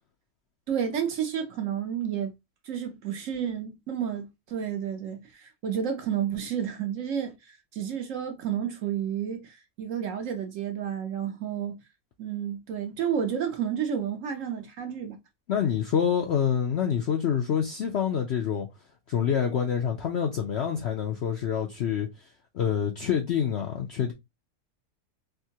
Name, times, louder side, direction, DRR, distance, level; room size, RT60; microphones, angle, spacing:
voice 1, 0.7-2.3 2.6-11.8 12.2-15.2, right 8 dB, 60° right, 0.9 m, -31 dB
voice 2, 15.5-18.7 19.1-22.1 22.5-24.1, left 8 dB, 65° left, 0.6 m, -26 dB
3.5 x 2.7 x 2.7 m
omnidirectional pair, 1.7 m